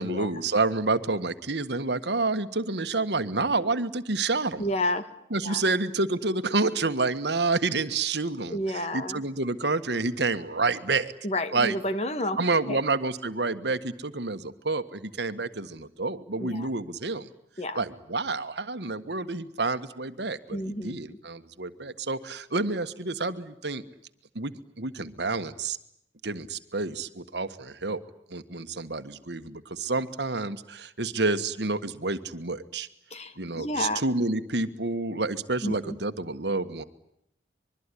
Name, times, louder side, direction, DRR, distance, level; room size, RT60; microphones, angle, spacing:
voice 1, 0.0-4.6 5.3-11.1 11.5-11.7 12.4-17.3 17.7-23.8 24.3-25.8 26.2-28.0 28.3-32.9 33.4-36.8, right 3 dB, 75° right, 11 dB, 1.5 m, -29 dB
voice 2, 4.6-5.1 5.4-5.6 8.5-9.2 11.2-12.8 16.4-16.7 17.6-17.8 20.5-21.2 33.1-34.0 35.6-36.0, left 1 dB, 35° left, 10 dB, 1.8 m, -31 dB
25.0 x 22.5 x 10.0 m, 0.74 s
head